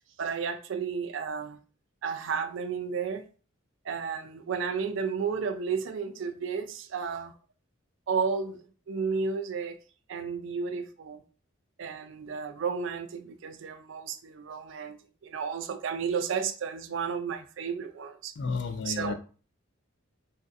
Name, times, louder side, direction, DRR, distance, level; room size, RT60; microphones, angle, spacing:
voice 1, 0.2-1.6 2.0-3.2 3.8-7.3 8.1-8.6 8.9-9.8 10.1-11.2 11.8-18.3 18.9-19.1, right 5 dB, 65° right, 0.4 m, -32 dB
voice 2, 18.4-19.1, left 4 dB, 55° left, 0.3 m, -32 dB
3.1 x 2.5 x 2.5 m
head